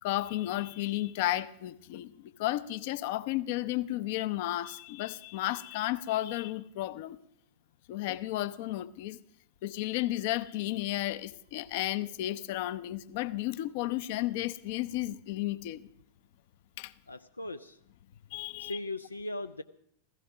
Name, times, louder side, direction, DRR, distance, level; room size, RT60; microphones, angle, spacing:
voice 1, 0.0-7.2 7.9-9.2 9.6-15.9 16.8-16.9 18.3-18.8, left 15 dB, 50° left, 16 dB, 0.7 m, -33 dB
voice 2, 17.1-17.8 18.6-19.6, left 2 dB, 80° left, 10 dB, 0.5 m, -38 dB
16.0 x 15.5 x 5.9 m, 0.71 s
figure-of-eight pair, 90°, 0 cm